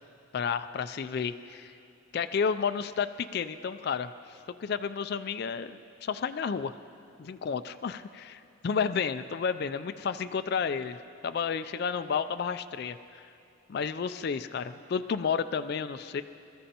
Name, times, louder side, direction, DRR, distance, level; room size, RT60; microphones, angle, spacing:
voice 1, 0.3-1.7 2.1-6.8 7.2-11.0 11.2-13.2 13.7-16.2, left 6 dB, 50° left, 11 dB, 0.3 m, -31 dB
26.0 x 13.5 x 2.9 m, 2.7 s
head